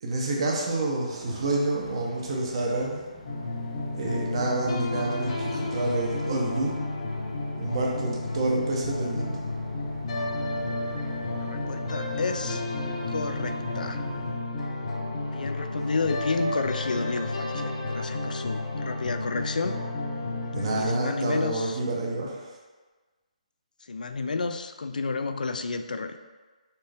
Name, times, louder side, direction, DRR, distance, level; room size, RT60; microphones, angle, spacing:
voice 1, 0.0-3.0 4.0-6.8 7.6-9.5 20.5-22.5, right 2 dB, 40° right, -2 dB, 0.7 m, -28 dB
sound 1, 1.1-14.3, left 1 dB, 10° left, 0.8 m, -45 dB
sound 2, 3.3-21.0, left 2 dB, 45° left, 0.7 m, -32 dB
voice 2, 11.4-12.6 13.1-14.0 15.3-19.8 20.7-21.8 23.9-26.2, left 4 dB, 90° left, 8 dB, 0.3 m, -31 dB
4.3 x 2.5 x 3.4 m, 1.3 s
hypercardioid pair, 165°, 4 cm